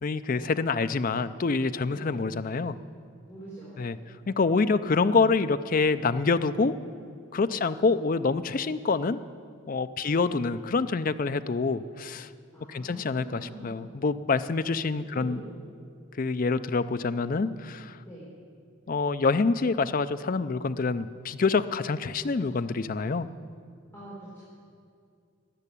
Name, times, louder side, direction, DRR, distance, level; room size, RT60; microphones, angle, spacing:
voice 1, 0.0-2.8 3.8-4.0 4.3-6.7 7.3-9.2 9.7-12.3 12.7-15.4 16.2-18.0 18.9-23.3, left 4 dB, 40° left, 12 dB, 0.4 m, -26 dB
voice 2, 1.9-2.3 3.3-3.9 4.4-5.2 7.5-7.7 10.0-10.2 12.5-13.9 14.4-14.5 15.1-15.6 18.0-18.3 23.9-24.4, right 1 dB, 10° left, -10 dB, 3.7 m, -45 dB
13.5 x 8.3 x 9.9 m, 2.3 s
head